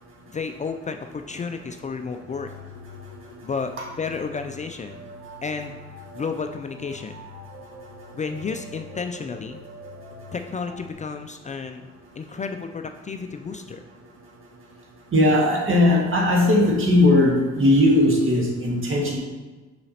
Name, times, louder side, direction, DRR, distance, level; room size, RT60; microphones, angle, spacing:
voice 1, 0.3-2.5 3.4-3.7 4.0-5.0 5.4-5.8 6.1-7.3 8.1-9.6 10.3-11.9 12.2-13.8, left 5 dB, 25° left, 6 dB, 0.4 m, -32 dB
sound 1, 2.2-10.9, left 1 dB, 65° right, 1.3 m, -44 dB
voice 2, 15.1-19.2, left 1 dB, 40° right, -2 dB, 1.8 m, -19 dB
6.7 x 4.9 x 2.9 m, 1.2 s
hypercardioid pair, 55°, 31 cm